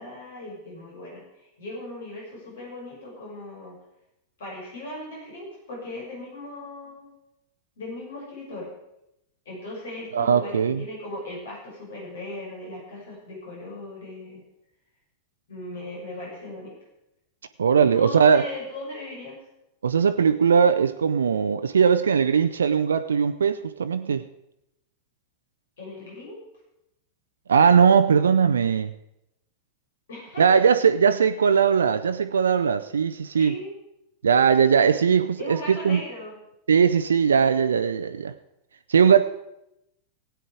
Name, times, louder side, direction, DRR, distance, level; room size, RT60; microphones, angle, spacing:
voice 1, 0.0-3.8 4.4-7.1 7.8-8.7 9.4-14.4 15.5-16.8 17.8-19.4 20.2-20.3 25.8-26.4 28.1-28.2 30.1-30.6 33.4-33.8 35.4-36.4, left 2 dB, 60° left, -3 dB, 6.4 m, -38 dB
voice 2, 10.1-10.8 17.6-18.5 19.8-24.3 27.5-28.9 30.4-33.5 34.2-36.0 36.7-38.3 38.9-39.2, right 6 dB, 70° right, 10 dB, 0.5 m, -19 dB
16.5 x 9.1 x 4.9 m, 0.85 s
figure-of-eight pair, 90°, 0 cm